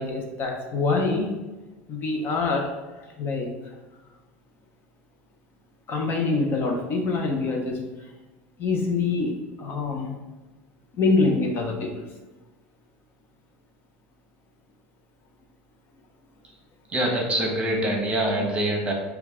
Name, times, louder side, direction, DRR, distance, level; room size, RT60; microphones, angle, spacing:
voice 1, 0.0-1.3 1.9-2.7 3.2-3.5 5.9-7.8 8.6-10.1 11.0-12.0, left 3 dB, 40° left, 1 dB, 0.7 m, -25 dB
voice 2, 16.9-18.9, right 1 dB, 20° right, 0 dB, 1.0 m, -25 dB
5.1 x 2.3 x 3.6 m, 1.2 s
supercardioid pair, 120°, 5 cm